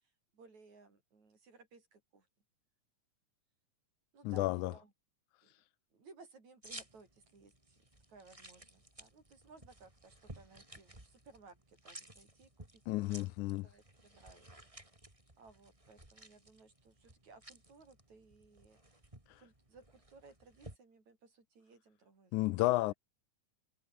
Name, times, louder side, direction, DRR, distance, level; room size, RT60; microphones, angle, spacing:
voice 1, 0.0-2.3 4.1-4.9 5.4-5.6 5.9-7.8 8.1-13.2 13.6-14.5 15.4-19.0 19.4-22.6, right 4 dB, 65° right, 7.3 m, -60 dB
voice 2, 4.3-4.7 12.9-13.7 22.3-22.9, left 19 dB, 80° left, 2.0 m, -32 dB
sound 1, 6.6-20.8, right 1 dB, 10° right, 3.9 m, -56 dB
omnidirectional pair, 3.5 m